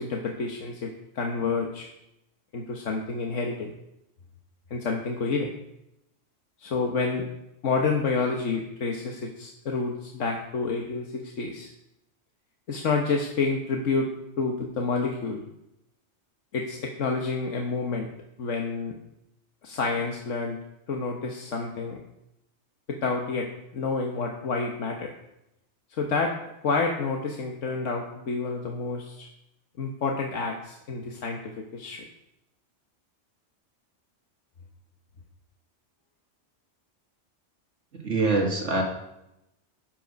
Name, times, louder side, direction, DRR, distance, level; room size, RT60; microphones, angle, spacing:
voice 1, 0.0-1.9 2.5-3.7 4.7-5.5 6.6-7.3 7.6-11.7 12.7-14.1 14.4-15.4 16.5-18.1 18.4-18.9 19.6-20.6 20.9-22.0 22.9-23.5 23.7-25.1 25.9-26.3 26.6-29.3 29.8-32.0, left 4 dB, 90° left, 1 dB, 1.5 m, -29 dB
voice 2, 37.9-38.8, right 3 dB, 80° right, 0 dB, 2.3 m, -24 dB
12.5 x 9.0 x 5.2 m, 0.86 s
omnidirectional pair, 1.2 m